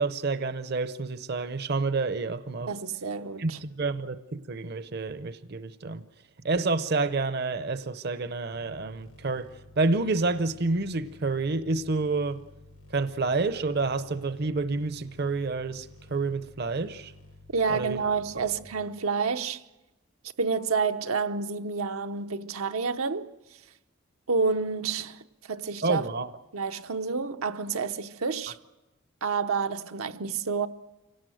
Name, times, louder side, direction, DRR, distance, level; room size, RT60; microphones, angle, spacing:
voice 1, 0.0-2.7 3.4-6.0 6.4-12.4 12.9-17.1 17.7-18.0 18.4-18.5 25.8-26.3, right 3 dB, 50° right, 0.7 m, -29 dB
voice 2, 2.7-3.6 17.5-19.6 20.4-23.3 24.3-26.1 26.5-28.6 29.2-30.7, right 5 dB, 80° right, 0.8 m, -29 dB
sound 1, 8.5-18.7, left 1 dB, 85° left, 5.0 m, -52 dB
25.5 x 18.0 x 7.8 m
head